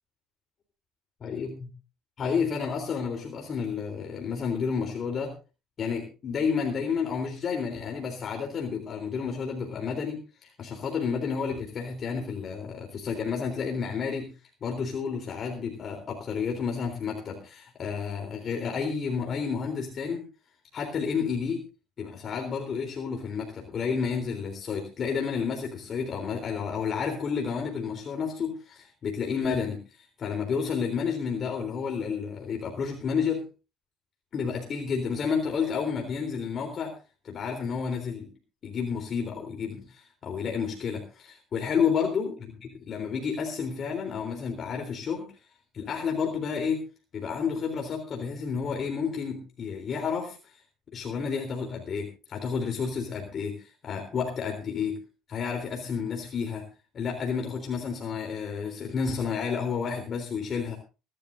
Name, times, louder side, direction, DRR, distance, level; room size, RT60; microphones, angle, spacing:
voice 1, 1.2-1.5 2.2-5.3 5.8-14.3 14.6-20.2 20.7-21.6 22.0-33.4 34.3-36.9 37.2-38.3 38.6-45.3 45.7-46.9 47.1-50.6 50.9-55.0 55.3-56.7 56.9-60.8, left 6 dB, 40° left, 2 dB, 3.6 m, -31 dB
25.5 x 12.5 x 2.7 m, 0.33 s
cardioid pair, 120°, 0 cm